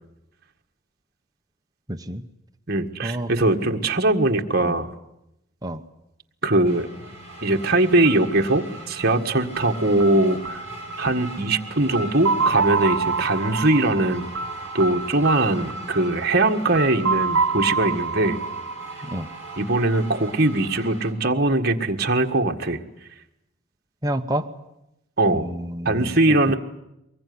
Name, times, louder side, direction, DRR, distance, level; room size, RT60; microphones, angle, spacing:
voice 1, 1.9-2.2 3.0-3.7 4.6-4.8 5.6-5.8 19.0-19.3 24.0-24.5 25.3-26.2, right 1 dB, 15° right, 7 dB, 1.0 m, -29 dB
voice 2, 2.7-4.9 6.4-6.9 7.4-10.6 11.0-14.3 14.7-18.4 19.6-22.8 25.2-25.5 25.9-26.5, right 2 dB, 45° right, 3 dB, 1.8 m, -21 dB
sound 1, 6.6-21.1, right 2 dB, 30° left, 5.4 m, -40 dB
sound 2, 8.1-19.8, right 4 dB, 70° right, 1.7 m, -28 dB
24.0 x 21.0 x 9.7 m, 0.87 s
head